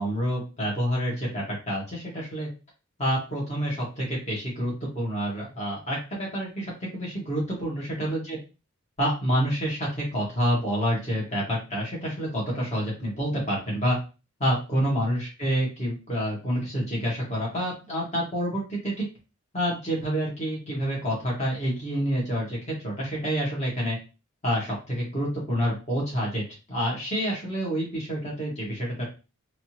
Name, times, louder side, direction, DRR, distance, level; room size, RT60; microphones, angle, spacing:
voice 1, 0.0-2.5 3.0-8.4 9.0-14.0 14.4-19.0 19.5-24.0 24.4-26.4 26.7-29.0, equal, 30° left, -4 dB, 1.8 m, -28 dB
4.1 x 2.9 x 3.0 m, 0.31 s
head